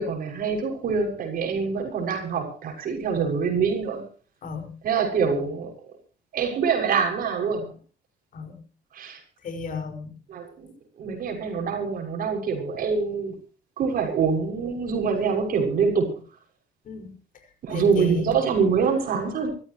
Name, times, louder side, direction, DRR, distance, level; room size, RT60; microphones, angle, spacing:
voice 1, 0.0-4.0 4.8-5.7 6.3-7.8 8.9-9.2 10.3-10.7 11.0-13.3 13.8-16.2 17.6-19.5, right 5 dB, 60° right, 3 dB, 6.5 m, -25 dB
voice 2, 4.4-4.8 8.3-8.6 9.4-10.2 16.8-17.1 17.4-18.4, left 5 dB, 55° left, 7 dB, 5.5 m, -34 dB
24.5 x 14.5 x 3.1 m, 0.39 s
cardioid pair, 110°, 17 cm